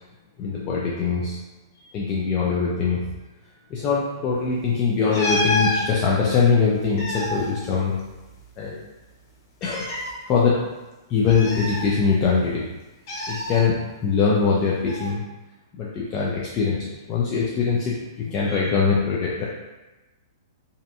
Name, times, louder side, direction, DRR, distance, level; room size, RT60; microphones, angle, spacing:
voice 1, 0.4-1.4 1.9-3.0 3.7-7.9 8.6-8.8 9.6-9.9 10.3-10.6 11.1-12.6 13.3-15.2 15.8-19.4, left 5 dB, 30° left, -5 dB, 0.4 m, -22 dB
sound 1, 5.1-5.8 6.7-8.4 8.7-8.8 9.6-10.1 11.3-12.3 13.1-13.6 14.9-15.1, left 1 dB, 50° left, 0.7 m, -28 dB
2.6 x 2.2 x 2.6 m, 1.1 s
hypercardioid pair, 125°, 2 cm